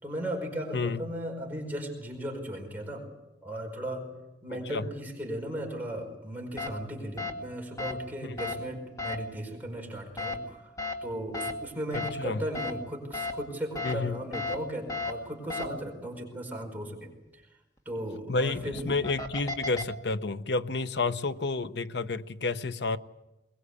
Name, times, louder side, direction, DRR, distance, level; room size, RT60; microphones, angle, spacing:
voice 1, 0.0-3.0 3.4-4.1 4.4-10.7 11.0-17.5 17.8-18.9 21.0-21.1, right 1 dB, 10° right, 4.9 m, -36 dB
sound 1, 6.6-6.7 7.2-7.3 7.8-7.9 8.4-8.5 9.0-9.2 10.2-10.4 10.8-10.9 11.3-11.5 11.9-12.1 12.5-12.7 13.1-13.3 13.8-13.9 14.3-14.6 14.9-15.1 15.5-15.7 18.5-19.8, left 3 dB, 20° left, 1.9 m, -33 dB
voice 2, 11.9-12.4 13.8-14.2 18.3-23.0, left 3 dB, 70° left, 0.8 m, -30 dB
22.5 x 20.5 x 8.4 m
head